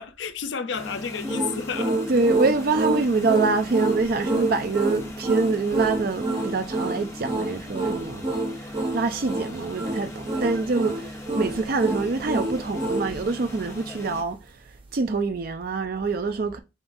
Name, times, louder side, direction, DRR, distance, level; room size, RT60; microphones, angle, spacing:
voice 1, 0.0-2.1, left 6 dB, 70° left, 0.5 m, -31 dB
sound 1, 0.7-14.2, left 1 dB, 15° left, 0.9 m, -39 dB
sound 2, 1.2-13.1, right 2 dB, 30° right, 0.8 m, -27 dB
voice 2, 2.1-8.3 8.6-14.4 14.9-16.6, right 3 dB, 50° right, 0.4 m, -25 dB
4.9 x 3.7 x 2.6 m
head